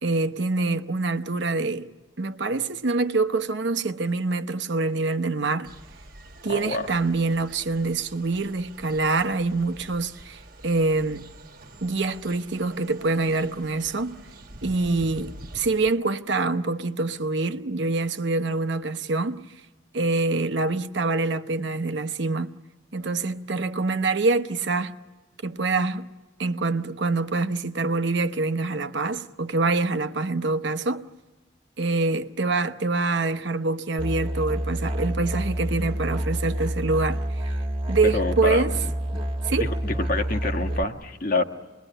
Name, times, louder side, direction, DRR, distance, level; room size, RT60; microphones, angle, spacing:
voice 1, 0.0-1.9 2.2-5.7 6.4-11.3 11.8-14.2 14.6-19.6 19.9-22.5 22.9-25.0 25.4-26.1 26.4-31.0 31.8-37.5 37.9-38.8 39.4-39.7, right 3 dB, 65° right, 0.9 m, -25 dB
sound 1, 5.6-15.9, right 1 dB, 45° right, 1.3 m, -46 dB
voice 2, 6.5-6.9 38.0-38.9 39.1-39.2 39.6-41.4, left 2 dB, 45° left, 1.5 m, -27 dB
Musical instrument, 34.0-40.8, right 1 dB, 25° right, 1.6 m, -28 dB
28.0 x 21.5 x 10.0 m
head